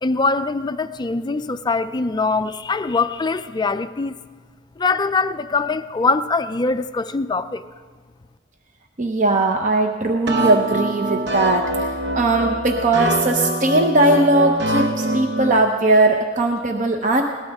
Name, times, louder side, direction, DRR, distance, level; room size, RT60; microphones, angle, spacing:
voice 1, 0.0-4.2 4.8-7.7, left 3 dB, 20° left, 11 dB, 0.4 m, -22 dB
voice 2, 9.0-11.9 12.1-17.2, right 2 dB, 40° right, 4 dB, 0.8 m, -19 dB
sound 1, 10.3-15.6, right 1 dB, 60° right, 1.0 m, -24 dB
21.5 x 18.5 x 3.6 m, 1.5 s
head